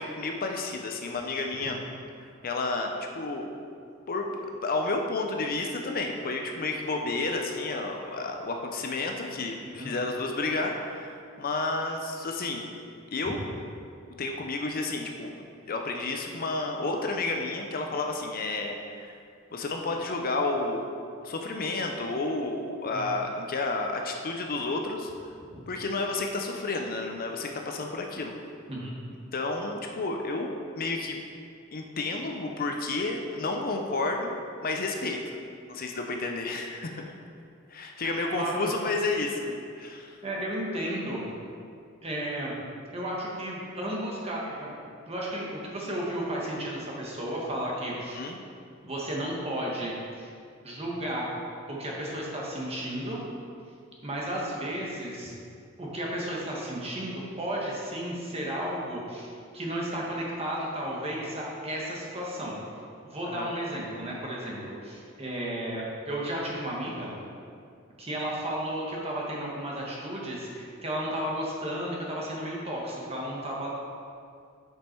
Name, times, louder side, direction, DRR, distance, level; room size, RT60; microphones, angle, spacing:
voice 1, 0.0-1.8 2.2-3.5 4.1-12.6 13.1-13.4 14.2-15.3 15.7-19.2 19.5-20.9 21.2-25.4 25.7-28.3 29.3-31.2 31.7-35.4 35.7-37.1 37.7-40.2 48.1-48.4 63.2-63.5, left 3 dB, 45° left, 3 dB, 0.6 m, -31 dB
voice 2, 38.0-38.7 40.2-41.2 42.0-42.5 42.9-44.7 45.1-48.2 48.9-50.3 50.6-51.3 51.7-53.2 54.0-55.3 55.8-62.6 63.1-67.2 68.0-73.7, right 1 dB, 30° right, -4 dB, 1.4 m, -33 dB
7.4 x 5.3 x 4.5 m, 2.4 s
head